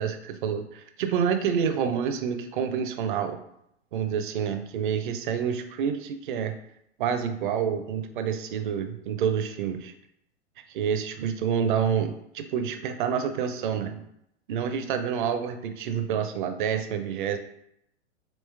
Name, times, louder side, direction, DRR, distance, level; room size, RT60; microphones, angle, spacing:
voice 1, 0.0-3.4 3.9-6.6 7.0-9.9 10.7-14.1 14.5-17.4, right 7 dB, 45° right, 8 dB, 0.5 m, -28 dB
3.2 x 3.0 x 3.3 m, 0.77 s
figure-of-eight pair, 100°, 36 cm